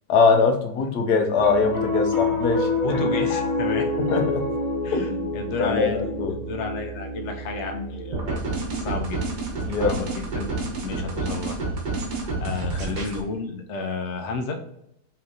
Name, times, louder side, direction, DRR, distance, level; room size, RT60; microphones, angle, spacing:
voice 1, 0.1-3.0 4.0-4.3 4.9-5.3 5.6-6.3 9.7-10.0, left 4 dB, 75° left, 4 dB, 1.2 m, -22 dB
Piano, 1.4-11.9, left 2 dB, 30° left, 1.2 m, -29 dB
voice 2, 2.8-3.9 4.8-6.1 6.5-8.4 8.8-9.2 9.8-10.5 10.8-11.6 12.0-14.6, left 4 dB, 55° left, 4 dB, 0.9 m, -32 dB
sound 1, 8.1-13.2, right 3 dB, 85° right, 1.7 m, -29 dB
5.6 x 3.2 x 2.7 m, 0.76 s
omnidirectional pair, 1.8 m